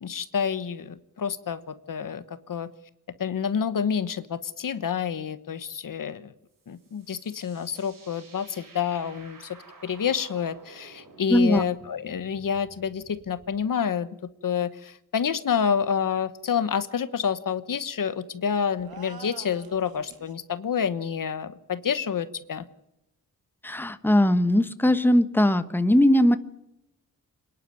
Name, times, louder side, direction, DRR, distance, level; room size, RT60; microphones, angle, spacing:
voice 1, 0.0-2.7 3.2-6.3 6.7-9.6 9.8-14.1 14.4-22.6, left 7 dB, 65° left, 13 dB, 1.2 m, -28 dB
sound 1, 6.5-13.7, right 3 dB, 65° right, 5.7 m, -52 dB
voice 2, 11.3-11.6 23.6-26.4, left 1 dB, 5° left, 11 dB, 1.2 m, -20 dB
sound 2, 18.8-20.3, right 7 dB, 85° right, 2.5 m, -45 dB
27.0 x 11.0 x 9.3 m, 0.86 s
wide cardioid pair, 120°, 35 cm